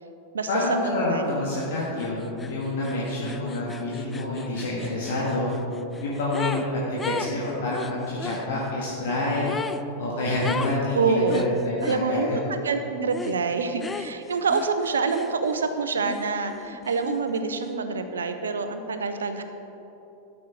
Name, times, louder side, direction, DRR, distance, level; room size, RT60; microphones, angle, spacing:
voice 1, 0.5-5.5 6.0-6.6 7.0-9.6 10.0-12.4, left 2 dB, 55° left, -6 dB, 1.8 m, -27 dB
sound 1, 1.5-1.7 2.0-6.7 7.0-8.4 9.4-9.8 10.4-10.8 11.3-12.0 13.1-13.4 13.8-15.7 16.0-17.4, left 4 dB, 15° left, 0.4 m, -36 dB
voice 2, 11.0-11.4 11.8-19.4, right 4 dB, 70° right, 9 dB, 0.7 m, -26 dB
13.0 x 6.3 x 4.6 m, 3.0 s
figure-of-eight pair, 90°, 0 cm